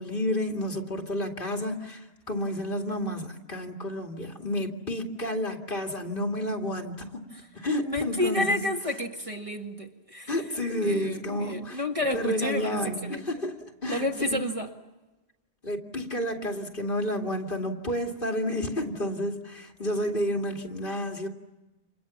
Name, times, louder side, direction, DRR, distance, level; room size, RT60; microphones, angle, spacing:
voice 1, 0.0-7.2 7.5-8.6 10.3-11.8 12.1-14.1 15.6-21.3, left 1 dB, 55° left, 2.7 m, -30 dB
voice 2, 7.8-10.3 10.7-13.3 13.9-14.7, left 1 dB, 30° right, 1.7 m, -30 dB
30.0 x 27.0 x 7.2 m
omnidirectional pair, 1.0 m